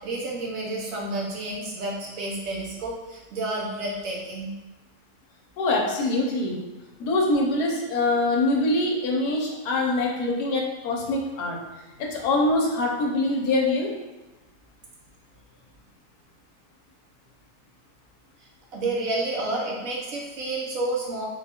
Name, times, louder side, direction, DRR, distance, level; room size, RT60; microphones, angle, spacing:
voice 1, 0.0-4.5 18.7-21.2, right 2 dB, 65° right, -3 dB, 1.0 m, -30 dB
voice 2, 5.6-6.6 7.0-11.6 12.0-13.9, left 2 dB, 75° left, 0 dB, 1.2 m, -24 dB
3.8 x 2.3 x 4.2 m, 1.1 s
omnidirectional pair, 1.8 m